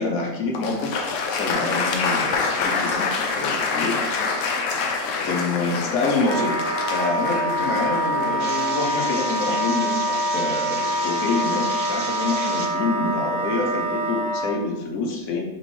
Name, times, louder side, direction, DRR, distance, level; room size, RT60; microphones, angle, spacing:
voice 1, 0.0-4.0 5.2-6.5 6.9-15.4, left 3 dB, 85° left, 0 dB, 1.2 m, -27 dB
Applause, 0.5-9.5, left 4 dB, 70° left, 0.9 m, -26 dB
Wind instrument woodwind instrument, 6.2-14.6, right 1 dB, 75° right, 1.4 m, -25 dB
sound 1, 8.4-12.7, right 4 dB, 55° right, 0.6 m, -34 dB
4.3 x 3.1 x 3.1 m, 1.1 s
omnidirectional pair, 1.4 m